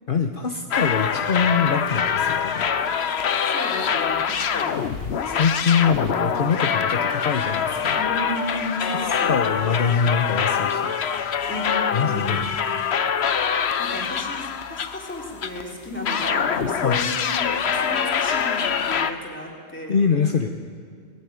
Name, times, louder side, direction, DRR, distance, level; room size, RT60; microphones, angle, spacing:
voice 1, 0.1-2.7 3.3-3.4 5.2-8.0 8.8-9.0 9.3-10.9 11.9-12.5 16.8-17.0 19.9-20.5, left 6 dB, 55° left, 4 dB, 1.1 m, -24 dB
sound 1, 0.7-15.6 16.1-19.1, left 7 dB, 75° left, 1.1 m, -24 dB
voice 2, 3.4-4.8 8.0-9.4 11.5-12.5 13.5-20.0, left 1 dB, 10° left, -2 dB, 3.6 m, -34 dB
20.0 x 14.5 x 9.3 m, 2.1 s
omnidirectional pair, 1.1 m